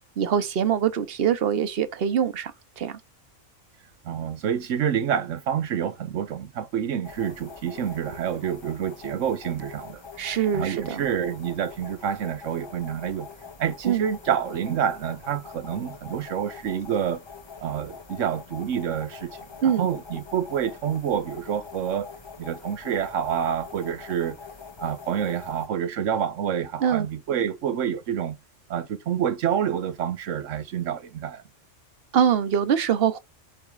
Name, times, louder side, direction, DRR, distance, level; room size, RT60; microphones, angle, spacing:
voice 1, 0.2-3.0 10.2-11.0 13.8-14.0 19.6-19.9 26.8-27.1 32.1-33.2, right 8 dB, 55° right, 1.0 m, -23 dB
voice 2, 4.0-10.0 10.5-13.3 13.6-17.2 17.6-22.1 22.4-24.4 24.8-28.4 28.7-31.4, right 9 dB, 85° right, 1.2 m, -28 dB
sound 1, 7.0-25.7, left 5 dB, 30° left, 0.6 m, -43 dB
8.1 x 3.6 x 4.7 m
omnidirectional pair, 1.3 m